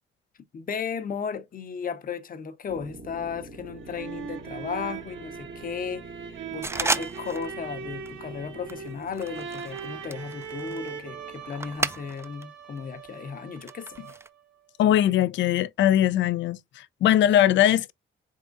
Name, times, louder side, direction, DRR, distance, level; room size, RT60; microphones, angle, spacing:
voice 1, 0.5-6.1 6.5-14.0, left 6 dB, 45° left, 0.8 m, -35 dB
sound 1, 2.7-12.2, right 3 dB, 55° right, 1.0 m, -47 dB
sound 2, 3.6-14.4, right 6 dB, 75° right, 1.4 m, -40 dB
sound 3, 6.6-7.6 7.8-8.2 8.7-12.4 12.8-14.3, right 3 dB, 15° right, 0.4 m, -33 dB
voice 2, 14.8-17.9, left 11 dB, 70° left, 0.5 m, -21 dB
4.2 x 3.7 x 2.4 m
cardioid pair, 90°, 20 cm